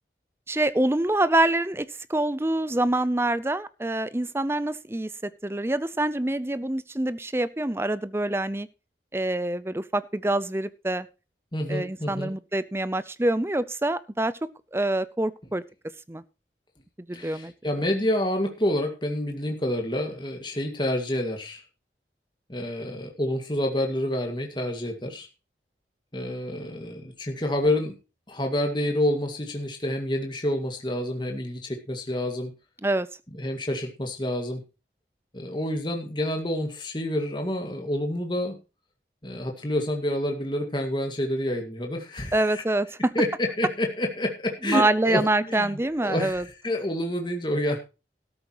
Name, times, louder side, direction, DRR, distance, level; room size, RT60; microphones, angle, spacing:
voice 1, 0.5-8.7 9.1-11.1 11.7-14.3 14.7-15.6 16.1-16.2 17.1-17.5 32.8-33.1 42.3-43.1 44.6-46.4, right 1 dB, 15° right, 16 dB, 0.6 m, -26 dB
voice 2, 11.5-12.3 17.1-21.6 22.5-25.3 26.1-27.9 28.3-32.5 33.3-34.6 35.3-38.6 39.2-42.6 43.1-47.8, left 1 dB, 25° left, 3 dB, 2.1 m, -28 dB
13.0 x 13.0 x 3.1 m, 0.31 s
head